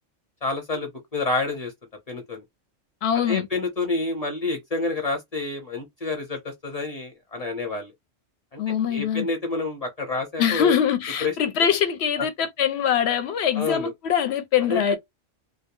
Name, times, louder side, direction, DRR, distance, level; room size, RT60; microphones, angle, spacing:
voice 1, 0.4-1.7 2.1-2.4 3.3-7.9 8.5-10.7 11.2-11.3 12.2-12.3 13.5-13.9 14.7-15.0, left 3 dB, 35° left, 0.7 m, -28 dB
voice 2, 3.0-3.5 8.6-9.3 10.4-15.0, left 8 dB, 65° left, 0.8 m, -23 dB
2.2 x 2.1 x 2.9 m
omnidirectional pair, 1.3 m